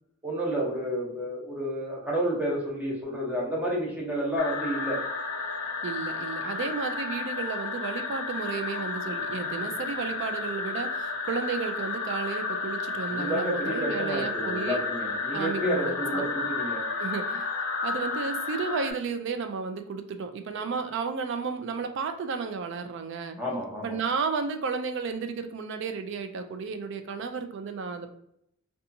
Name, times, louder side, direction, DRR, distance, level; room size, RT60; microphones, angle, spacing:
voice 1, 0.2-5.0 13.2-16.8 23.4-24.0, equal, 5° right, -4 dB, 0.7 m, -30 dB
sound 1, 4.4-18.9, left 4 dB, 90° left, 0.5 m, -32 dB
voice 2, 5.8-14.8 15.3-16.3 17.0-17.5 17.8-23.4 23.8-28.1, right 5 dB, 55° right, 8 dB, 0.3 m, -33 dB
2.7 x 2.3 x 2.6 m, 0.73 s
head